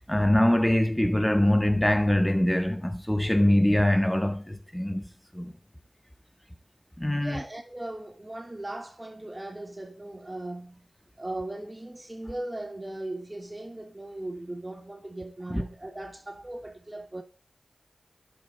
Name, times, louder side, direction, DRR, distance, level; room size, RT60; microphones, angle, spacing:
voice 1, 0.1-5.1 5.3-5.5 7.0-7.4, left 1 dB, 10° left, 1.7 m, -23 dB
voice 2, 7.2-10.9 11.2-17.2, right 1 dB, 30° right, 2.6 m, -38 dB
22.0 x 8.9 x 4.1 m
cardioid pair, 45°, 0 cm